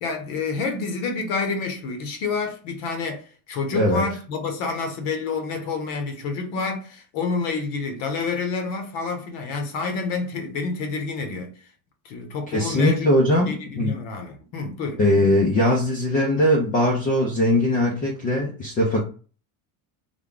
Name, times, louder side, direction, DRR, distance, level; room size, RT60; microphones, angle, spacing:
voice 1, 0.0-11.6 12.0-13.1 13.5-15.0, left 4 dB, 55° left, 0.9 m, -28 dB
voice 2, 3.7-4.0 12.5-14.0 15.0-19.0, left 1 dB, 20° left, 0.4 m, -20 dB
3.4 x 2.1 x 3.7 m
cardioid pair, 175°, 40 cm